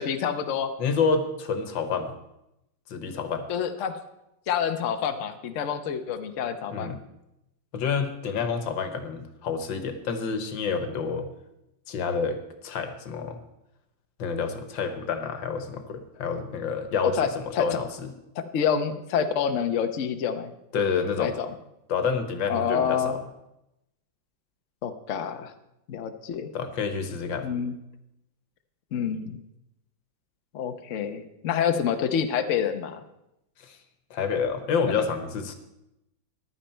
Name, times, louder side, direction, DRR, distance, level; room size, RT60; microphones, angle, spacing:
voice 1, 0.0-0.7 3.5-4.0 4.5-7.0 17.0-17.7 18.4-20.5 21.2-21.5 22.5-23.1 24.8-25.5 25.9-26.5 27.4-27.8 28.9-29.4 30.5-33.0, left 7 dB, 50° left, 8 dB, 1.0 m, -27 dB
voice 2, 0.8-2.1 2.9-3.4 6.7-7.0 7.7-11.3 11.9-12.4 12.6-13.4 14.2-18.1 20.7-21.4 21.9-23.3 26.5-27.5 33.6-33.8 34.1-35.5, left 5 dB, 90° left, 8 dB, 1.9 m, -28 dB
14.5 x 11.0 x 4.4 m, 0.87 s
omnidirectional pair, 2.0 m